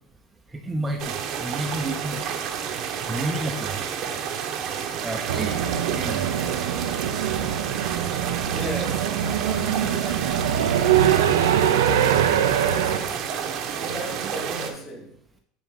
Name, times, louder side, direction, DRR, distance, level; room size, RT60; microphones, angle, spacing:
voice 1, 0.6-2.2 3.1-3.8 5.0-5.5 5.9-6.3 7.3-7.5 12.9-13.0, right 1 dB, 20° right, 0.8 m, -30 dB
sound 1, 1.0-14.7, right 7 dB, 50° right, 1.0 m, -30 dB
sound 2, 5.3-13.0, right 9 dB, 80° right, 0.6 m, -23 dB
voice 2, 8.5-10.4 10.7-12.4 12.7-13.3 13.8-15.2, equal, 30° left, 2.7 m, -36 dB
9.3 x 3.8 x 3.8 m
hypercardioid pair, 95°, 0 cm